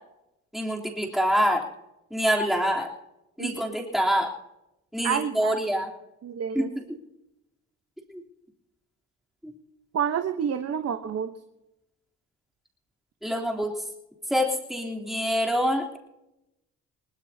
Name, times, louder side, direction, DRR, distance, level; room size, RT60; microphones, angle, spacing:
voice 1, 0.5-1.6 2.1-2.9 3.4-4.3 4.9-5.9 6.5-6.8 8.1-8.2 9.4-9.5 13.2-13.7 14.3-16.0, equal, ahead, -1 dB, 3.3 m, -25 dB
voice 2, 5.0-5.6 6.2-6.7 9.9-11.3, right 8 dB, 55° right, 8 dB, 1.0 m, -28 dB
21.5 x 20.0 x 2.8 m, 0.91 s
cardioid pair, 90°, 30 cm